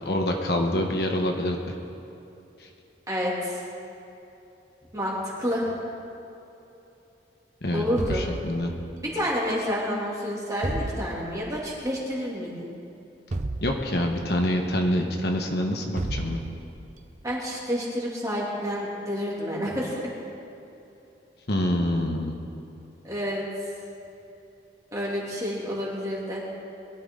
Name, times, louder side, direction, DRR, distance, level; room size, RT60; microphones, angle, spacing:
voice 1, 0.0-1.6 2.6-2.7 7.6-8.7 13.6-16.4 21.5-22.4, left 1 dB, 60° left, 2 dB, 1.2 m, -26 dB
voice 2, 3.1-3.6 4.9-5.7 7.7-8.2 9.1-12.7 17.2-20.1 23.0-23.4 24.9-26.4, equal, 20° right, -5 dB, 2.8 m, -29 dB
sound 1, 8.0-9.1 10.6-11.6 13.3-14.4 16.0-16.9, right 2 dB, 40° right, 0.6 m, -32 dB
21.5 x 12.5 x 3.9 m, 2.9 s
head